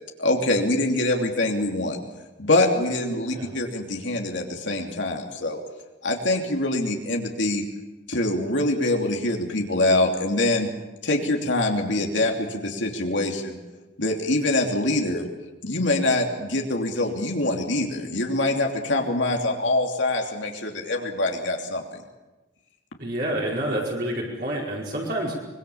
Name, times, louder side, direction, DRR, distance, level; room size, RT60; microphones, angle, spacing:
voice 1, 0.2-2.0 2.4-5.6 6.0-7.6 8.1-10.7 11.0-13.6 14.0-15.2 15.6-22.0, left 2 dB, 75° left, 1 dB, 3.1 m, -24 dB
voice 2, 23.0-25.3, right 1 dB, 50° right, -4 dB, 5.0 m, -28 dB
25.0 x 22.5 x 7.3 m, 1.1 s
head